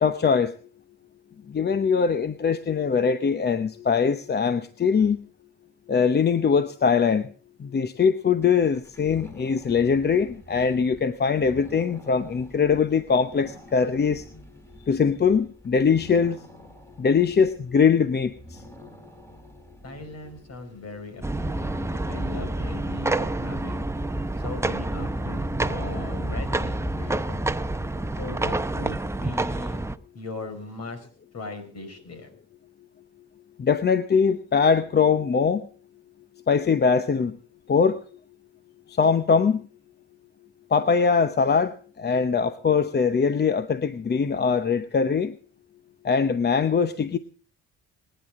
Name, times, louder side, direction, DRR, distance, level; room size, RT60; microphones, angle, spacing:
voice 1, 0.0-0.5 1.5-5.2 5.9-7.3 7.6-14.2 14.9-16.4 17.0-18.6 22.4-22.5 33.6-35.7 36.5-37.4 37.7-38.0 39.0-39.6 40.7-45.3 46.0-47.2, left 6 dB, 35° left, 11 dB, 0.8 m, -22 dB
sound 1, 8.4-23.8, equal, 10° left, 3.7 m, -48 dB
voice 2, 19.8-23.9 24.4-27.4 28.2-29.8 30.1-31.1 31.3-32.3, left 2 dB, 55° left, 8 dB, 5.1 m, -39 dB
sound 2, 21.2-30.0, right 2 dB, 10° right, 0.7 m, -28 dB
28.0 x 10.5 x 3.6 m, 0.41 s
cardioid pair, 90°, 30 cm